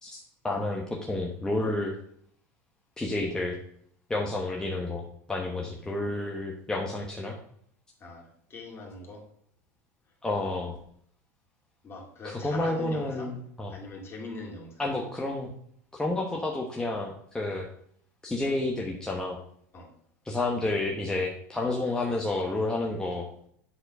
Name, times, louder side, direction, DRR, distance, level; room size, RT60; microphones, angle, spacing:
voice 1, 0.0-1.9 3.0-3.6 4.1-5.0 5.3-7.4 10.2-10.8 12.2-13.7 14.8-15.5 15.9-17.6 18.2-19.4 20.2-23.3, left 2 dB, 10° left, -1 dB, 1.1 m, -30 dB
voice 2, 8.0-9.3 11.8-13.3 13.7-14.8 19.7-19.9, left 3 dB, 30° left, 0 dB, 2.4 m, -42 dB
7.7 x 4.4 x 5.5 m, 0.65 s
supercardioid pair, 105°, 8 cm